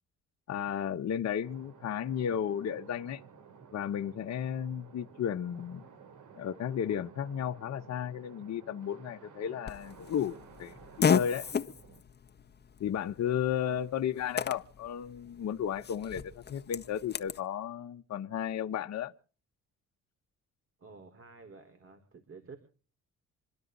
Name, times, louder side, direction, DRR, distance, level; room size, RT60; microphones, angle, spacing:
voice 1, 0.5-3.2 3.7-5.8 6.4-10.7 11.1-11.5 12.8-19.1, left 9 dB, 60° left, 1.3 m, -34 dB
sound 1, 1.4-12.0, right 6 dB, 75° right, 3.7 m, -54 dB
Fart, 9.7-17.4, left 6 dB, 35° left, 1.5 m, -35 dB
voice 2, 13.6-13.9 20.8-22.6, right 4 dB, 45° right, 4.6 m, -51 dB
27.0 x 12.5 x 4.1 m
cardioid pair, 90°, 30 cm